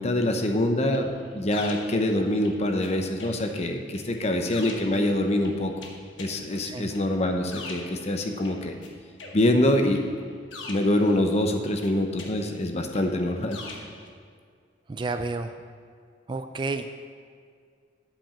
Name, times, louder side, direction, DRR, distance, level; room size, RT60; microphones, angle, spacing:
voice 1, 0.0-5.7 6.2-8.7 9.3-10.0 10.7-13.8, left 1 dB, 35° left, 5 dB, 0.7 m, -25 dB
sound 1, 0.9-2.9 3.2-8.9 9.2-11.4 11.8-14.1, left 3 dB, 85° left, 1.2 m, -44 dB
voice 2, 14.9-15.6 16.3-16.9, right 3 dB, 25° right, 8 dB, 0.3 m, -31 dB
8.8 x 5.1 x 7.1 m, 2.1 s
head